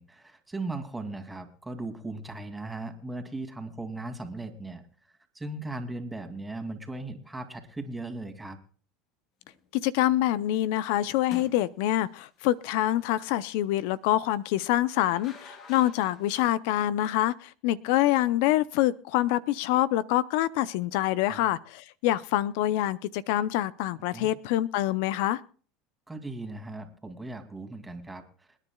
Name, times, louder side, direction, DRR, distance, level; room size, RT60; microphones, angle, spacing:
voice 1, 0.0-4.9 5.3-8.6 21.2-21.4 24.1-24.3 26.1-28.5, right 2 dB, 10° right, 2.6 m, -38 dB
sound 1, 9.4-9.7 11.2-12.0 14.6-16.4, left 5 dB, 50° left, 3.7 m, -48 dB
voice 2, 9.8-25.4, left 14 dB, 70° left, 0.6 m, -26 dB
28.0 x 9.9 x 2.3 m
hypercardioid pair, 95°, 0 cm